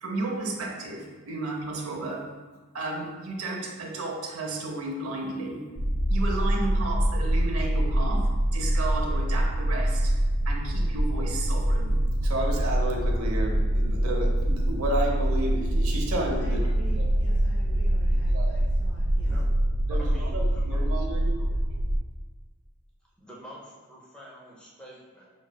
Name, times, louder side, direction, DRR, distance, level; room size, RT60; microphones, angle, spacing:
voice 1, 0.0-2.3 2.7-5.6 6.1-10.1 10.4-12.0 12.2-16.6 17.0-17.1 18.1-18.5 19.9-21.3, right 2 dB, 75° right, 0 dB, 0.7 m, -32 dB
sound 1, 5.8-22.0, right 1 dB, 45° right, 0.3 m, -25 dB
voice 2, 16.4-19.3, right 2 dB, 55° left, -5 dB, 1.4 m, -46 dB
voice 3, 19.9-21.0 21.4-21.5 23.2-25.3, equal, 5° left, -5 dB, 0.6 m, -47 dB
5.8 x 3.1 x 2.2 m, 1.3 s
head